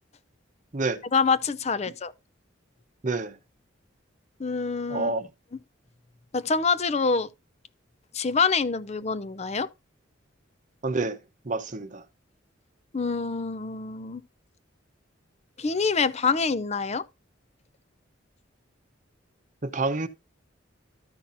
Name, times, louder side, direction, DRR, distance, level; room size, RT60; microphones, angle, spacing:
voice 1, 1.1-2.1 4.4-5.1 6.3-7.3 8.1-9.7 12.9-14.2 15.6-17.0, left 5 dB, 35° left, 0.6 m, -26 dB
voice 2, 3.0-3.4 4.9-5.3 10.8-11.2 11.4-12.0 19.6-20.1, right 3 dB, 40° right, 0.8 m, -28 dB
13.0 x 5.8 x 2.6 m
head